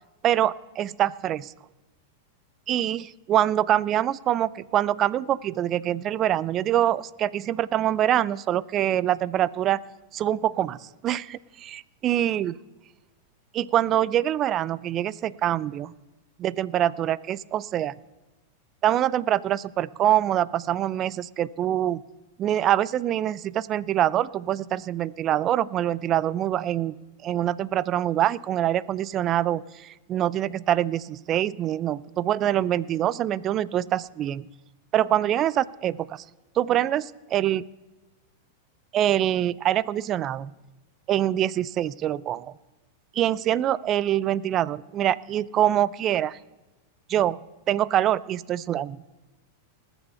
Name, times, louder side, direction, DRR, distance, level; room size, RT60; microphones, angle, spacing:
voice 1, 0.2-1.5 2.7-9.8 10.1-12.5 13.5-15.9 16.4-17.9 18.8-22.0 22.4-27.0 27.2-34.5 34.9-36.2 36.6-37.6 38.9-40.5 41.1-42.5 43.1-46.4 47.1-47.4 47.7-49.0, right 11 dB, 35° right, 21 dB, 0.4 m, -25 dB
19.5 x 7.1 x 5.6 m, 1.1 s
hypercardioid pair, 110°, 0 cm